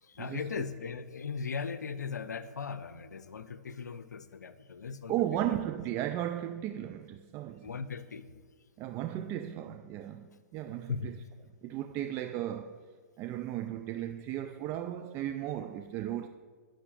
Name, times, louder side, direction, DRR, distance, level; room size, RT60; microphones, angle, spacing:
voice 1, 0.0-5.1 5.5-5.6 7.6-8.4 10.9-11.1, left 5 dB, 85° left, 0.7 m, -38 dB
voice 2, 5.1-7.8 8.8-11.1 11.6-12.8 13.2-16.3, right 12 dB, 30° right, 0.4 m, -35 dB
10.0 x 6.3 x 6.4 m
hypercardioid pair, 125°, 9 cm